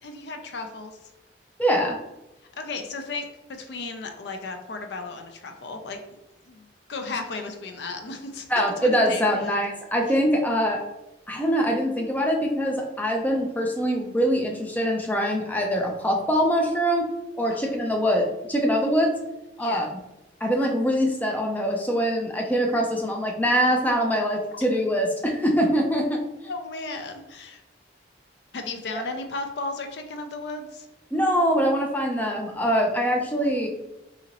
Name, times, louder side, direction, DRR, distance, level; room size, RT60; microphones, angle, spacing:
voice 1, 0.0-1.0 2.6-6.0 6.5-8.5 8.8-9.5 10.1-10.2 17.5-17.6 19.6-19.9 24.5-24.6 26.5-27.6 28.5-30.9, left 3 dB, 70° left, 5 dB, 0.5 m, -35 dB
voice 2, 1.6-2.0 8.5-10.8 11.3-17.1 17.4-19.1 19.6-19.9 20.4-26.2 31.1-33.7, equal, 10° left, 0 dB, 0.4 m, -23 dB
3.8 x 2.8 x 2.9 m, 0.95 s
head